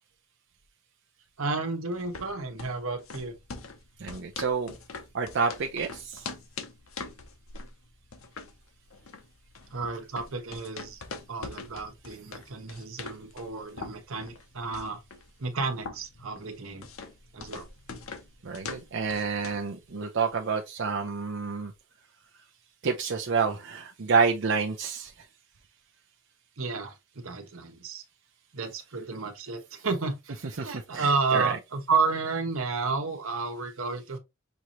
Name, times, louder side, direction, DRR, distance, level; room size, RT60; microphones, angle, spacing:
voice 1, 1.4-3.4 9.7-11.0 11.3-15.0 15.4-16.9 17.3-17.6 26.6-28.0 28.5-34.2, right 4 dB, 85° right, 1.1 m, -31 dB
sound 1, 1.9-19.7, left 4 dB, 90° left, 0.8 m, -43 dB
voice 2, 4.0-4.8 5.1-6.3 18.4-21.7 22.8-25.1 30.6-31.6, right 5 dB, 60° right, 0.6 m, -28 dB
6.2 x 2.8 x 3.0 m
head